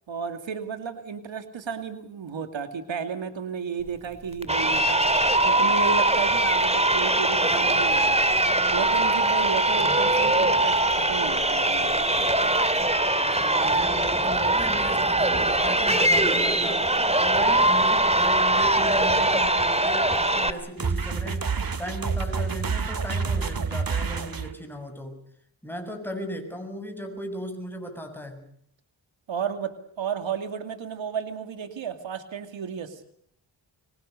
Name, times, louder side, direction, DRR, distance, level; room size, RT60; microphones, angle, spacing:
voice 1, 0.1-5.1 5.5-8.2 8.7-11.9 29.3-33.0, right 6 dB, 90° right, 8 dB, 2.5 m, -33 dB
Crowd, 4.4-20.5, right 2 dB, 15° right, 2.5 m, -22 dB
voice 2, 13.2-21.5 21.8-25.2 25.6-28.4, equal, 5° left, 6 dB, 7.2 m, -36 dB
sound 1, 20.8-24.5, right 5 dB, 50° right, 2.0 m, -28 dB
25.0 x 24.0 x 6.7 m, 0.65 s
cardioid pair, 60°, 45 cm